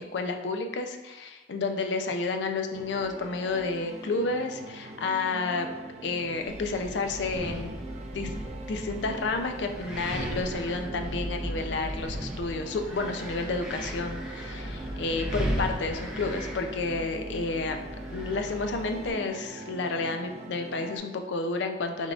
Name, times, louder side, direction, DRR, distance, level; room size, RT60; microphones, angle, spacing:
voice 1, 0.0-5.7 6.0-7.7 8.1-8.3 8.7-17.8 18.1-22.1, left 3 dB, 70° left, 5 dB, 0.4 m, -31 dB
sound 1, 2.7-21.0, right 2 dB, 40° right, 0.4 m, -43 dB
Wind, 6.5-19.1, equal, 5° right, 0.7 m, -36 dB
5.4 x 3.6 x 2.4 m, 1.1 s
head